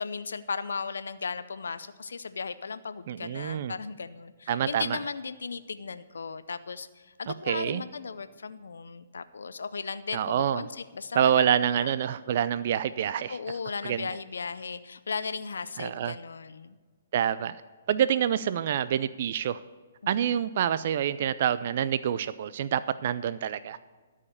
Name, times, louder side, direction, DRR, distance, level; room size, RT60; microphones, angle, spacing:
voice 1, 0.0-11.5 11.8-11.9 13.3-16.8 20.0-20.1, left 5 dB, 80° left, 13 dB, 0.5 m, -36 dB
voice 2, 3.1-3.7 4.5-5.0 7.3-7.8 10.1-10.7 11.2-13.4 13.8-14.1 15.8-16.1 17.1-17.6 17.9-19.6 20.1-23.9, right 9 dB, 50° right, 14 dB, 0.3 m, -27 dB
12.5 x 5.0 x 8.2 m, 1.4 s
hypercardioid pair, 135°, 0 cm